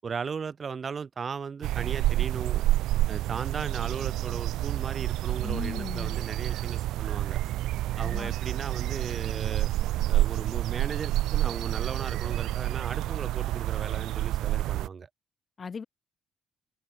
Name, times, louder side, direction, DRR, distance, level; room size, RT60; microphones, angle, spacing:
voice 1, 0.0-2.6 3.1-7.4 8.0-9.7 10.1-15.1, right 6 dB, 40° right, 7.8 m, -36 dB
sound 1, 1.6-14.9, right 15 dB, 90° right, 1.2 m, -29 dB
voice 2, 5.4-6.2 8.0-8.3 15.6-15.8, left 5 dB, 40° left, 7.7 m, -37 dB
cardioid pair, 90°, 0 cm